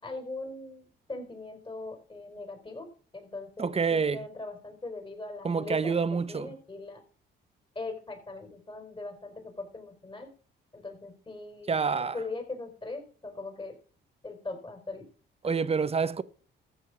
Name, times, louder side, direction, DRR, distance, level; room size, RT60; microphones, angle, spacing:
voice 1, 0.0-2.9 3.1-6.0 6.3-7.0 7.7-10.3 10.7-13.7 14.2-15.0 15.4-15.5, left 3 dB, 25° left, 4.9 m, -40 dB
voice 2, 3.6-4.2 5.4-6.5 11.7-12.2 15.4-16.2, right 5 dB, 30° right, 0.9 m, -27 dB
14.5 x 5.6 x 6.1 m
cardioid pair, 90°, 20 cm